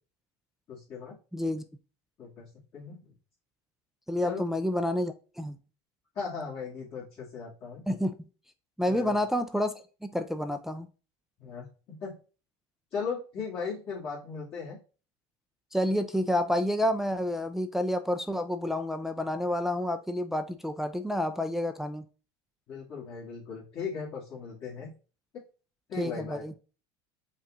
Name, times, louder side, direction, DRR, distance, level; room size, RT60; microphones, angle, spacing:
voice 1, 0.7-1.2 2.2-3.0 4.2-4.4 6.1-7.8 8.9-9.2 11.4-12.1 12.9-14.8 22.7-24.9 25.9-26.4, left 5 dB, 45° left, -9 dB, 2.0 m, -37 dB
voice 2, 1.3-1.6 4.1-5.6 7.9-8.1 8.8-9.7 10.0-10.9 15.7-22.0 26.0-26.5, left 1 dB, ahead, 7 dB, 0.4 m, -29 dB
5.3 x 2.4 x 3.9 m, 0.35 s
supercardioid pair, 115°, 14 cm